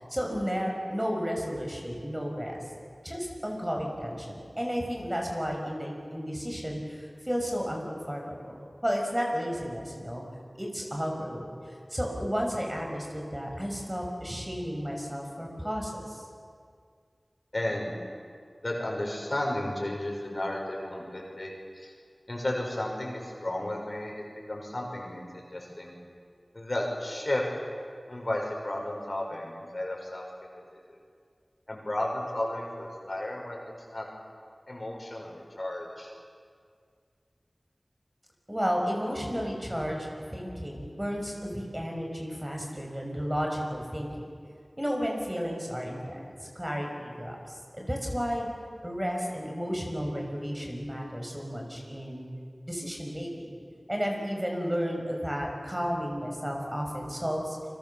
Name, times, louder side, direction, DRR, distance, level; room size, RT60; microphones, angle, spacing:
voice 1, 0.0-2.6 3.0-8.5 8.8-10.2 10.6-11.5 11.9-16.2 38.5-44.3 44.8-47.4 47.7-48.5 48.8-52.3 52.7-53.5 53.9-57.6, equal, 15° right, 0 dB, 6.0 m, -32 dB
voice 2, 17.5-17.9 18.6-21.9 22.3-25.9 26.5-27.4 28.1-30.2 30.5-30.6 31.7-33.6 33.9-34.1 34.7-36.1, left 1 dB, 50° left, 0 dB, 5.9 m, -33 dB
29.0 x 23.0 x 7.1 m, 2.1 s
wide cardioid pair, 50°, 0 cm